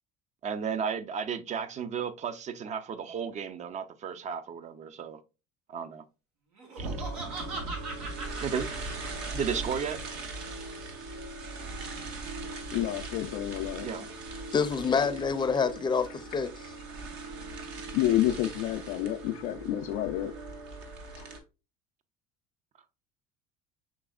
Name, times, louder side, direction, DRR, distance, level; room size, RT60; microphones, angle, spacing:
voice 1, 0.4-5.2 5.7-6.0 6.8-6.9 8.4-8.7 9.3-10.0 13.8-14.1, right 7 dB, 40° right, 0.6 m, -34 dB
Laughter, 6.6-9.8, right 3 dB, 85° right, 1.4 m, -40 dB
sound 1, 6.8-21.4, right 3 dB, 70° right, 1.1 m, -39 dB
voice 2, 12.5-13.9 17.9-20.3 21.2-21.3, left 13 dB, 75° left, 0.4 m, -29 dB
voice 3, 14.5-16.5, left 5 dB, 25° left, 0.6 m, -27 dB
6.0 x 3.4 x 2.3 m
supercardioid pair, 80°, 18 cm